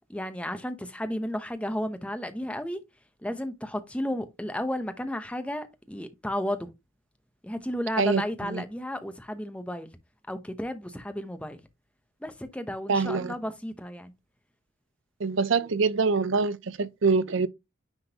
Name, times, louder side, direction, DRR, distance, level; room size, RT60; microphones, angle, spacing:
voice 1, 0.1-2.8 3.2-6.7 7.4-9.9 10.3-11.6 12.2-14.1, left 1 dB, 5° left, 0.7 m, -33 dB
voice 2, 8.0-8.6 12.9-13.3 15.2-17.5, right 4 dB, 60° right, 0.5 m, -25 dB
9.7 x 3.6 x 2.9 m
head